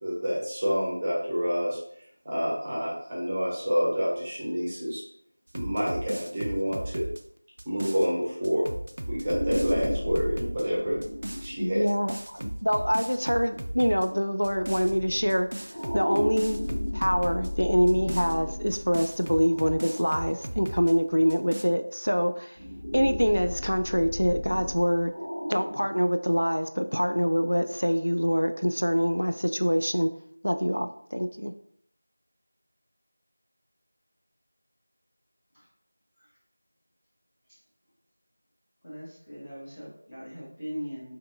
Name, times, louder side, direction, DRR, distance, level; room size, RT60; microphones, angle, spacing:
voice 1, 0.0-1.8 2.2-5.0 5.5-7.0 7.6-8.6 9.1-11.0 11.4-11.8, equal, 15° right, -6 dB, 0.8 m, -28 dB
sound 1, 5.5-8.1 8.4-10.6 11.0-11.5 11.9-14.1 14.4-14.9 15.3-17.5 17.9-20.9 21.3-21.6, right 1 dB, 45° right, 0.3 m, -36 dB
sound 2, 9.0-13.3 14.4-20.4 20.9-21.0 22.6-26.0, left 1 dB, 35° left, 1.2 m, -35 dB
voice 2, 11.6-16.6 16.9-22.6 22.9-25.2 25.5-30.1 30.4-31.5, equal, 85° left, 8 dB, 0.3 m, -25 dB
voice 3, 38.8-41.2, equal, 10° left, -11 dB, 1.0 m, -40 dB
5.3 x 2.6 x 2.6 m, 0.67 s
figure-of-eight pair, 175°, 0 cm